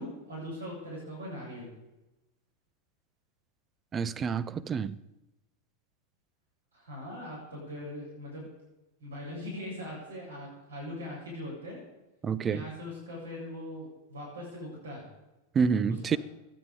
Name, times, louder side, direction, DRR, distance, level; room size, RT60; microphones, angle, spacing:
voice 1, 0.0-1.7 6.7-8.5 9.0-11.8 12.4-15.0 16.1-16.2, left 1 dB, 70° right, 7.6 m, -41 dB
voice 2, 3.9-5.0 12.2-12.6 15.5-16.2, right 6 dB, 20° right, 0.7 m, -28 dB
23.0 x 9.7 x 5.2 m
figure-of-eight pair, 90°, 0 cm